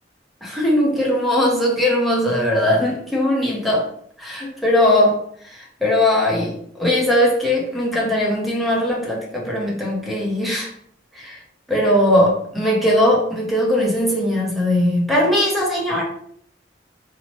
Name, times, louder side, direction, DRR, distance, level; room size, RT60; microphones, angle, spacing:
voice 1, 0.4-3.8 4.2-5.2 5.8-6.5 6.8-10.7 11.2-11.4 11.7-16.0, left 1 dB, ahead, -3 dB, 0.6 m, -19 dB
2.8 x 2.0 x 2.9 m, 0.64 s
head